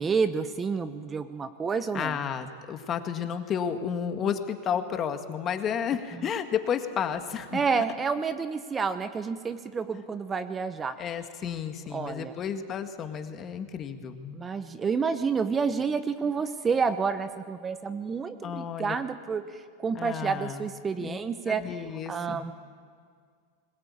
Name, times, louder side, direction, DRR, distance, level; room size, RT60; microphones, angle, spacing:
voice 1, 0.0-2.2 7.5-10.9 11.9-12.3 14.3-19.4 19.8-21.6 22.1-22.5, right 5 dB, 20° right, 11 dB, 0.9 m, -29 dB
voice 2, 1.9-7.6 11.0-14.4 18.4-19.0 19.9-20.7 21.0-21.2 21.5-22.5, left 8 dB, 30° left, 7 dB, 1.8 m, -32 dB
21.0 x 20.0 x 8.7 m, 2.1 s
hypercardioid pair, 115°, 0 cm